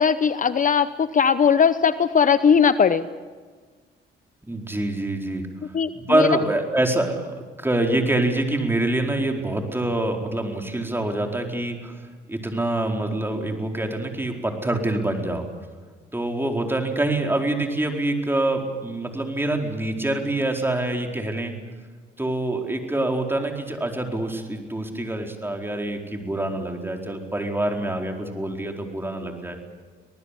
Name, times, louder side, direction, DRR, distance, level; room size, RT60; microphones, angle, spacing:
voice 1, 0.0-3.1 5.7-6.3, left 6 dB, 40° left, 13 dB, 0.8 m, -19 dB
voice 2, 4.5-5.5 5.9-12.0 12.3-15.4 16.1-21.5 22.2-29.6, right 1 dB, 10° right, 3 dB, 4.4 m, -25 dB
25.0 x 19.0 x 8.4 m, 1.5 s
cardioid pair, 90°, 20 cm